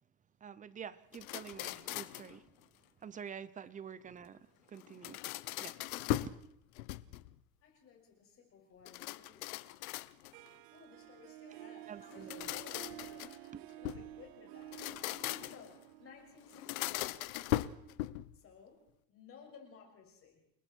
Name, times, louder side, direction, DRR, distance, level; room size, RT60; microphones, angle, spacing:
voice 1, 0.4-2.6 3.0-5.3 5.6-6.3 11.9-12.5, right 7 dB, 20° right, 17 dB, 0.7 m, -48 dB
sound 1, 1.1-2.4 4.8-6.4 6.8-7.4 8.8-10.5 12.1-14.1 14.6-15.7 16.5-18.4, left 16 dB, 85° left, 0.9 m, -39 dB
voice 2, 7.6-9.7 10.7-14.8 15.2-17.3 18.3-18.8 19.1-20.4, left 6 dB, 35° left, 2 dB, 6.4 m, -57 dB
Harp, 10.3-17.2, right 16 dB, 55° right, 0.7 m, -52 dB
30.0 x 20.5 x 4.6 m, 0.79 s
supercardioid pair, 145°, 41 cm